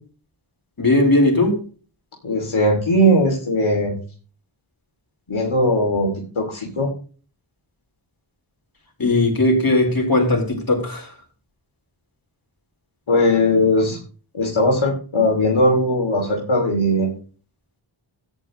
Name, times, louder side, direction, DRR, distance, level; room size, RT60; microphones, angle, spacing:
voice 1, 0.8-1.6 9.0-11.1, left 2 dB, 45° left, 4.4 m, -18 dB
voice 2, 2.2-3.9 5.3-6.1 6.4-6.9 13.1-14.0 14.3-17.1, left 1 dB, 75° left, 2.8 m, -19 dB
13.5 x 9.5 x 3.1 m
wide cardioid pair, 65°, 48 cm